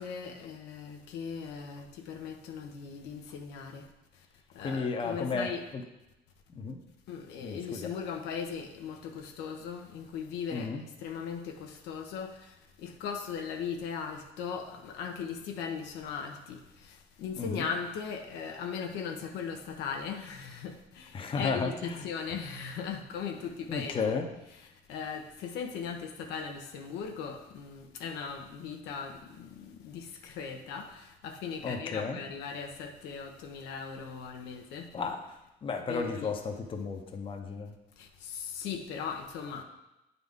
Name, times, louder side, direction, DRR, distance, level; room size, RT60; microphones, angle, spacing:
voice 1, 0.0-3.8 4.6-5.6 7.1-12.3 12.8-16.6 17.2-24.0 24.9-34.9 35.9-36.3 38.2-39.6, left 6 dB, 85° left, 4 dB, 0.8 m, -38 dB
voice 2, 4.6-5.8 6.5-6.8 7.4-7.9 10.5-10.8 17.4-17.7 21.1-22.0 23.7-24.3 31.6-32.2 34.9-35.2 35.6-37.7, left 4 dB, 30° left, 4 dB, 0.7 m, -33 dB
9.0 x 4.0 x 3.5 m, 0.94 s
cardioid pair, 110°, 17 cm